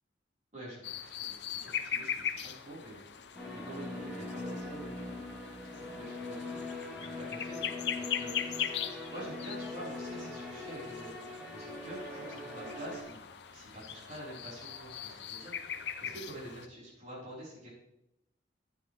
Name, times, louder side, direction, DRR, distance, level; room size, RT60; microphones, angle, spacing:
voice 1, 0.5-1.3 1.6-3.0 3.5-5.3 5.7-13.2 13.5-17.7, right 1 dB, 45° right, -6 dB, 4.7 m, -47 dB
sound 1, 0.8-16.7, left 8 dB, 70° left, 0.7 m, -40 dB
sound 2, 3.3-13.0, left 2 dB, ahead, 3.2 m, -42 dB
12.0 x 9.4 x 3.4 m, 0.84 s
head